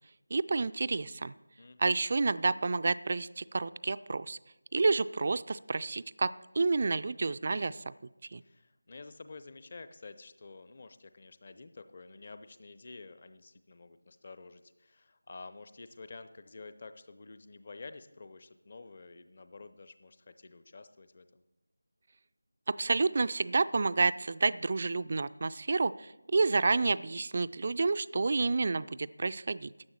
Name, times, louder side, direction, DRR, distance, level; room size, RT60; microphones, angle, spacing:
voice 1, 0.3-1.3 1.8-4.4 4.7-7.9 8.3-8.4 22.7-29.7, right 3 dB, 35° right, 15 dB, 0.3 m, -29 dB
voice 2, 1.6-2.0 8.4-21.4, left 3 dB, 35° left, 11 dB, 0.7 m, -50 dB
15.0 x 10.5 x 4.3 m, 1.0 s
figure-of-eight pair, 165°, 0 cm